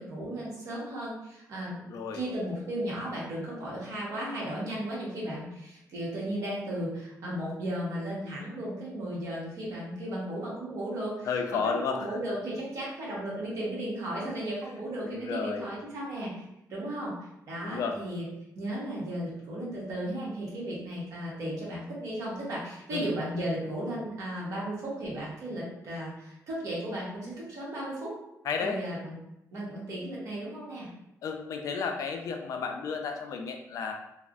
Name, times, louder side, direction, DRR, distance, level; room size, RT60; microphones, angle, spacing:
voice 1, 0.0-1.8 2.1-16.4 16.7-18.2 18.5-28.1 28.6-29.2 29.5-30.9, right 1 dB, 60° right, -5 dB, 1.0 m, -35 dB
voice 2, 1.9-2.2 11.3-12.0 15.0-15.7 17.6-18.0 22.9-23.1 28.4-28.8 31.2-33.9, left 5 dB, 65° left, 4 dB, 0.4 m, -32 dB
3.2 x 2.0 x 2.5 m, 0.86 s
cardioid pair, 155°, 6 cm